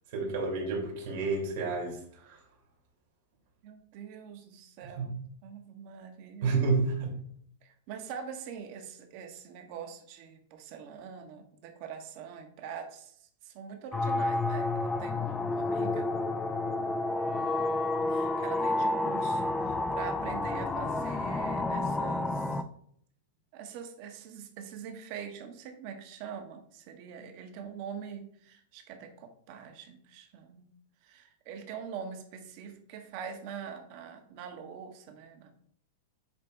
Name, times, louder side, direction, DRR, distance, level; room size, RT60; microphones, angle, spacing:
voice 1, 0.1-2.4 4.8-5.1 6.4-7.1, right 4 dB, 70° right, -1 dB, 2.8 m, -30 dB
voice 2, 3.6-6.5 7.6-16.1 18.1-22.6 23.5-30.7 31.0-35.5, right 7 dB, 50° right, 5 dB, 1.4 m, -44 dB
sound 1, 13.9-22.6, left 2 dB, 15° left, 0.6 m, -30 dB
8.4 x 3.4 x 4.8 m, 0.62 s
hypercardioid pair, 115°, 0 cm